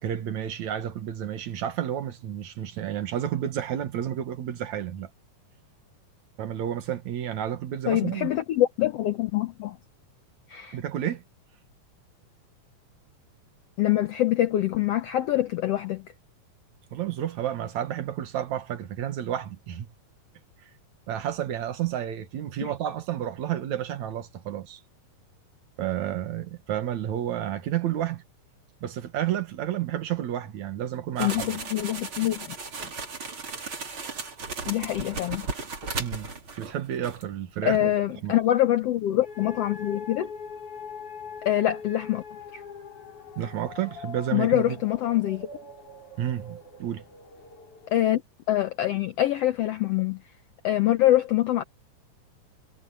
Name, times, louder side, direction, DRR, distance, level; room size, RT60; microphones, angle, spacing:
voice 1, 0.0-5.1 6.4-8.3 10.7-11.2 16.9-19.9 21.1-24.8 25.8-28.2 28.8-31.5 36.0-36.3 36.6-37.9 38.2-38.3 43.4-44.8 46.2-47.0, right 11 dB, 65° right, 2.6 m, -31 dB
voice 2, 7.9-9.8 10.5-10.8 13.8-16.0 31.2-32.5 34.7-35.4 37.6-40.3 41.4-42.2 42.5-42.6 44.3-45.5 47.9-48.2 48.5-50.2 50.6-51.6, left 13 dB, 80° left, 1.4 m, -24 dB
sound 1, 31.2-36.8 37.0-37.2, right 4 dB, 40° right, 4.0 m, -36 dB
sound 2, 39.2-48.1, left 5 dB, 65° left, 7.6 m, -42 dB
omnidirectional pair, 3.8 m